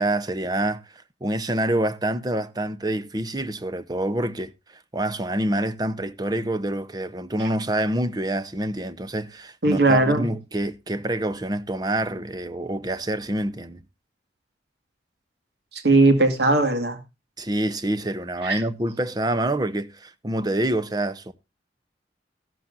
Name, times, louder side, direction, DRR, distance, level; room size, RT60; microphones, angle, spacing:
voice 1, 0.0-13.8 17.4-21.3, right 1 dB, 20° right, 0.8 m, -27 dB
voice 2, 9.6-10.3 15.7-17.0 18.4-18.6, right 2 dB, 65° right, 2.1 m, -19 dB
14.0 x 11.5 x 2.6 m
head